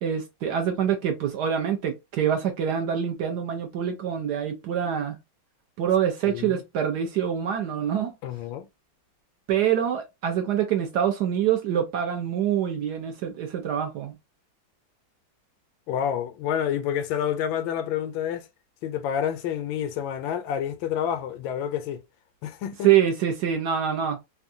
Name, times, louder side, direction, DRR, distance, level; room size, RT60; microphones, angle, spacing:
voice 1, 0.0-5.2 5.8-8.1 9.5-14.1 22.8-24.2, right 9 dB, 70° right, 1.1 m, -25 dB
voice 2, 6.2-6.6 8.2-8.6 15.9-18.4 18.8-22.0 22.4-22.9, left 9 dB, 80° left, 1.3 m, -28 dB
3.6 x 2.2 x 2.5 m
omnidirectional pair, 2.1 m